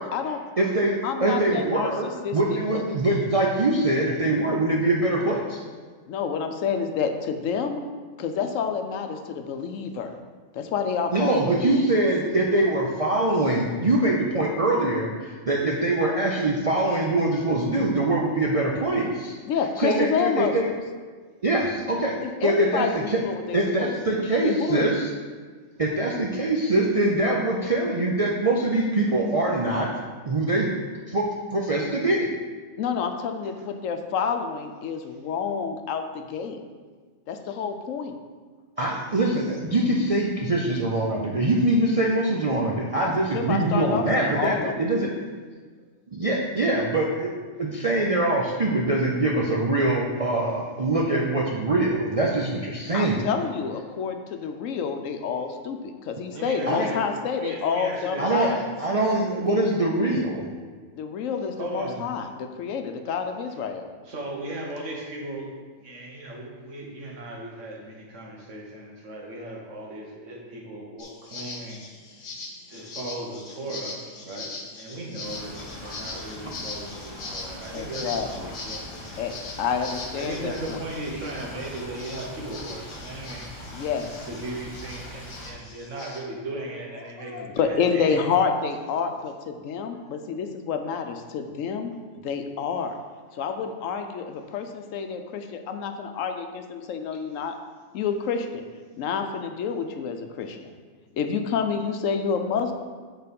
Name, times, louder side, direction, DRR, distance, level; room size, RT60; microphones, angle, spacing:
voice 1, 0.0-0.4 1.0-2.8 6.1-7.8 8.2-10.2 10.5-11.8 19.5-20.5 22.2-24.9 32.8-36.6 37.3-38.1 43.0-45.1 52.9-58.6 60.9-63.9 77.7-78.5 79.2-80.8 83.7-84.2 87.2-92.0 92.2-93.0 93.3-97.5 97.9-98.7 99.0-100.6 101.2-102.7, left 6 dB, 80° left, 6 dB, 1.0 m, -29 dB
voice 2, 0.6-5.6 11.1-19.4 19.8-20.7 21.4-22.2 22.4-23.2 23.5-25.1 25.8-29.9 30.2-30.7 31.1-32.3 38.8-45.1 46.1-47.3 47.6-53.2 56.7-56.9 58.2-58.5 58.8-60.5, right 2 dB, 45° right, -3 dB, 0.5 m, -23 dB
voice 3, 56.3-57.0 57.3-58.6 61.6-62.0 64.0-65.5 65.8-71.8 72.7-78.1 78.3-79.2 79.8-83.5 84.3-88.2, right 1 dB, 70° right, -2 dB, 1.6 m, -37 dB
sound 1, 71.0-86.2, left 3 dB, 55° left, 1.1 m, -41 dB
sound 2, 75.2-85.5, equal, 25° left, 1.3 m, -41 dB
6.8 x 4.0 x 5.2 m, 1.5 s
omnidirectional pair, 1.3 m